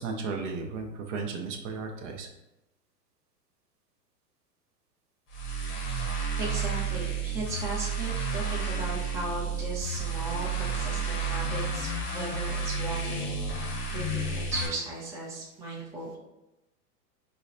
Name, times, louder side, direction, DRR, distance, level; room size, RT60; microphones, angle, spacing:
voice 1, 0.0-2.3, right 4 dB, 50° right, 3 dB, 0.6 m, -34 dB
sound 1, 5.3-14.7, right 4 dB, 25° left, 0.8 m, -31 dB
voice 2, 5.8-16.2, right 2 dB, 5° right, -5 dB, 0.5 m, -37 dB
4.5 x 2.1 x 2.5 m, 0.94 s
hypercardioid pair, 105°, 48 cm